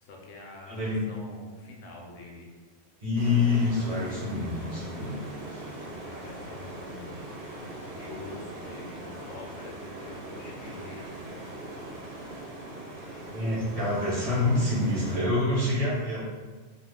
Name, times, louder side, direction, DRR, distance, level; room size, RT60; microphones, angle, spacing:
voice 1, 0.0-2.5 5.7-7.1 7.9-11.1, left 2 dB, 85° left, 0 dB, 1.0 m, -46 dB
voice 2, 0.7-1.1 3.0-5.2 5.5-5.6 13.3-16.2, left 2 dB, 30° right, -9 dB, 1.0 m, -26 dB
sound 1, 3.2-15.1, right 1 dB, 75° right, 1.2 m, -41 dB
2.5 x 2.4 x 3.6 m, 1.3 s
omnidirectional pair, 1.3 m